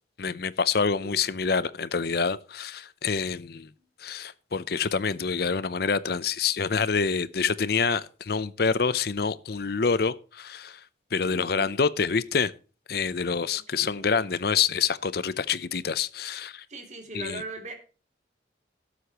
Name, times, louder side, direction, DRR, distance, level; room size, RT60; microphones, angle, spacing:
voice 1, 0.2-3.7 4.0-10.8 11.1-12.5 12.9-16.6 17.1-17.4, left 5 dB, 55° left, 0.6 m, -27 dB
voice 2, 11.1-11.8 13.5-14.1 16.7-17.7, right 2 dB, 40° right, 2.8 m, -40 dB
17.5 x 8.1 x 3.0 m
head